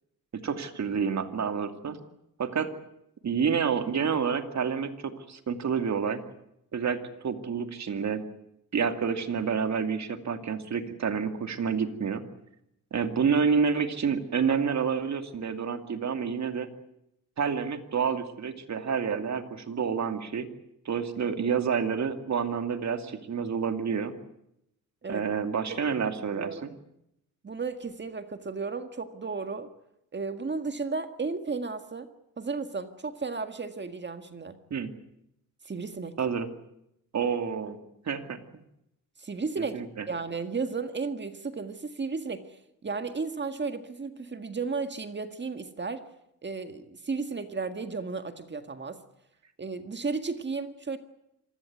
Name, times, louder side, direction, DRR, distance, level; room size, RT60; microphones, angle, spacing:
voice 1, 0.3-2.0 2.4-2.7 3.2-6.2 6.7-8.2 8.7-12.2 12.9-16.7 17.4-20.5 20.8-24.1 25.1-26.6 34.7-34.9 36.2-36.5 37.1-37.8 38.0-38.6 39.6-40.1, right 6 dB, 55° right, 7 dB, 2.6 m, -29 dB
voice 2, 26.3-26.7 27.4-29.7 30.1-32.1 32.4-34.6 35.6-36.2 39.2-39.8 40.1-46.0 46.4-49.0 49.6-51.0, right 4 dB, 35° right, 8 dB, 1.8 m, -34 dB
26.5 x 16.5 x 9.4 m, 0.82 s
cardioid pair, 110°, 33 cm